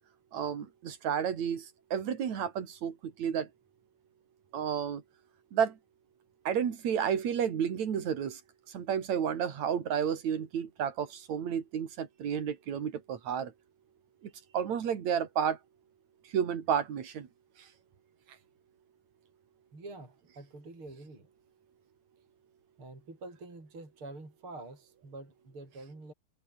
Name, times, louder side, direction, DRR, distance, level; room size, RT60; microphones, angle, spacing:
voice 1, 0.3-3.5 4.5-5.0 5.5-5.8 6.4-8.4 8.7-13.5 14.5-15.6 16.3-17.3, right 8 dB, 45° right, 3.1 m, -31 dB
voice 2, 19.7-21.3 22.8-26.1, right 2 dB, 25° right, 7.5 m, -47 dB
omnidirectional pair, 5.2 m